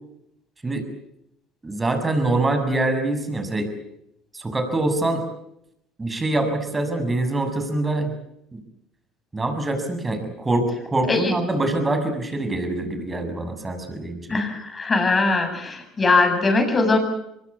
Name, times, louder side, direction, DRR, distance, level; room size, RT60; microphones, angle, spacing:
voice 1, 1.6-3.7 4.3-5.2 6.0-8.1 8.5-8.6 9.3-14.3, right 2 dB, 20° right, 8 dB, 7.0 m, -24 dB
voice 2, 14.3-17.0, left 3 dB, 25° left, 6 dB, 7.8 m, -20 dB
24.5 x 21.0 x 8.5 m, 0.78 s
supercardioid pair, 90°, 0 cm